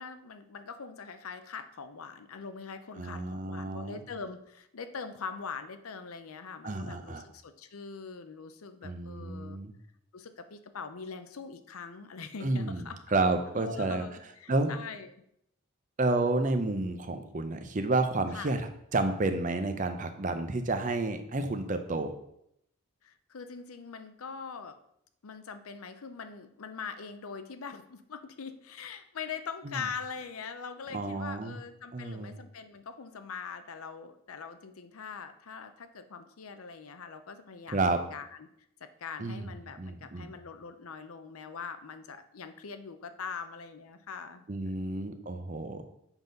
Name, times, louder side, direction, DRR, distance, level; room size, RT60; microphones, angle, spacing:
voice 1, 0.0-9.6 10.1-13.0 13.5-15.2 18.3-18.5 23.0-24.8 25.2-37.8 38.1-38.5 38.8-45.0, left 5 dB, 90° left, 9 dB, 0.6 m, -42 dB
voice 2, 3.0-4.0 6.6-7.2 8.8-9.7 12.4-12.8 13.1-14.0 14.5-14.7 16.0-18.6 18.9-22.1 29.6-29.7 30.9-31.5 31.9-32.4 37.7-38.0 39.2-39.5 39.8-40.3 44.5-45.8, right 2 dB, 35° right, 8 dB, 0.6 m, -30 dB
7.2 x 4.0 x 5.2 m, 0.75 s
head